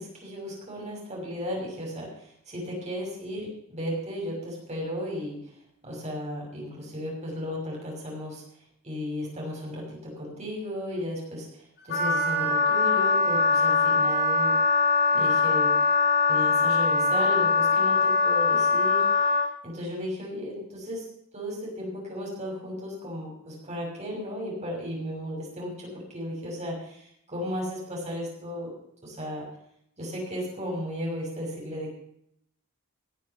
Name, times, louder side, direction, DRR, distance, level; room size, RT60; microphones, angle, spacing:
voice 1, 0.0-5.4 5.8-8.4 8.8-14.5 15.1-15.7 16.3-21.1 21.3-28.7 29.0-29.4 30.0-31.9, equal, 30° right, -2 dB, 6.3 m, -35 dB
Wind instrument woodwind instrument, 11.9-19.5, left 4 dB, 50° left, 5.1 m, -22 dB
18.0 x 7.5 x 7.2 m, 0.71 s
head